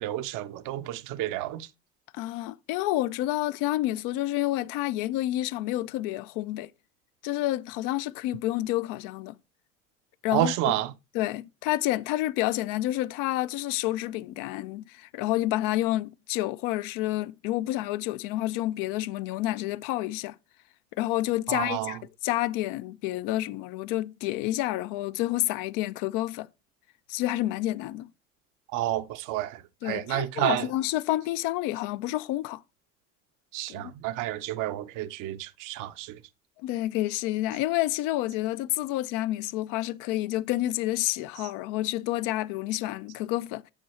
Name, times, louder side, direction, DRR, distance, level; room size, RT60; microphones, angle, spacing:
voice 1, 0.0-1.7 10.3-10.9 21.5-22.0 28.7-30.7 33.5-36.2, right 14 dB, 55° right, 0.7 m, -30 dB
voice 2, 2.1-6.7 7.2-9.4 10.2-10.7 11.1-20.4 21.0-26.5 27.1-28.1 29.8-32.6 33.7-33.9 36.6-43.6, left 16 dB, 55° left, 0.5 m, -29 dB
9.0 x 4.6 x 4.3 m
hypercardioid pair, 65°, 38 cm